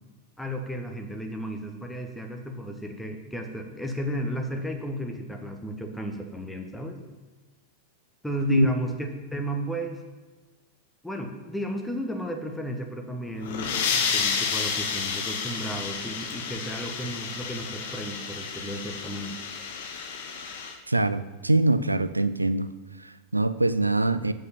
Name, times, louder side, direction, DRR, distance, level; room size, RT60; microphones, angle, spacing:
voice 1, 0.4-7.0 8.2-10.0 11.0-19.4, equal, 5° left, 3 dB, 1.2 m, -33 dB
sound 1, 13.3-20.8, left 6 dB, 55° left, 1.0 m, -31 dB
voice 2, 20.9-22.7 23.0-24.3, right 2 dB, 85° right, 13 dB, 0.4 m, -23 dB
8.1 x 5.5 x 7.1 m, 1.3 s
figure-of-eight pair, 90°, 0 cm